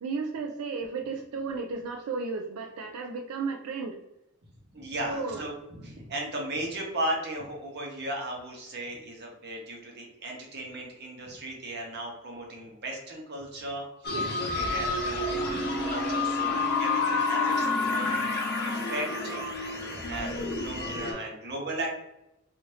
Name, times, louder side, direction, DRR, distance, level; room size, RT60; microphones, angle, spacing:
voice 1, 0.0-4.0 5.0-5.4 14.1-14.3, right 4 dB, 85° right, 3 dB, 0.4 m, -34 dB
voice 2, 4.7-19.4 19.7-21.9, right 1 dB, 50° right, 0 dB, 0.9 m, -36 dB
sound 1, 14.0-21.1, left 3 dB, 50° left, 0.7 m, -29 dB
2.7 x 2.4 x 3.2 m, 0.88 s
head